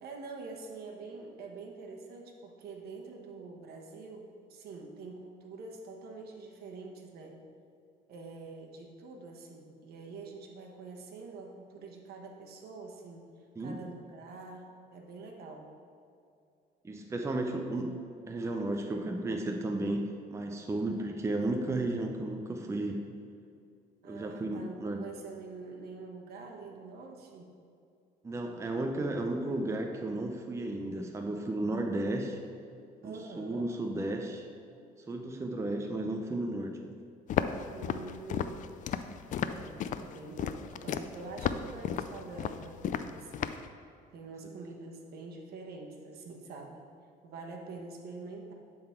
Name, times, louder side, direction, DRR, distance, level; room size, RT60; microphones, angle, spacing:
voice 1, 0.0-7.4 8.1-13.3 13.6-15.7 20.9-21.1 24.0-27.5 33.0-33.7 37.7-38.6 39.5-43.5 44.1-46.8 47.2-48.5, right 3 dB, 70° right, 1 dB, 1.2 m, -46 dB
voice 2, 16.8-18.0 18.3-23.0 24.0-25.0 28.2-32.4 33.0-34.4 35.1-37.0, right 2 dB, 15° right, 3 dB, 0.6 m, -33 dB
Walk footsteps, 37.3-43.7, left 8 dB, 50° left, 0.4 m, -34 dB
11.0 x 3.9 x 4.5 m, 2.5 s
cardioid pair, 110°, 17 cm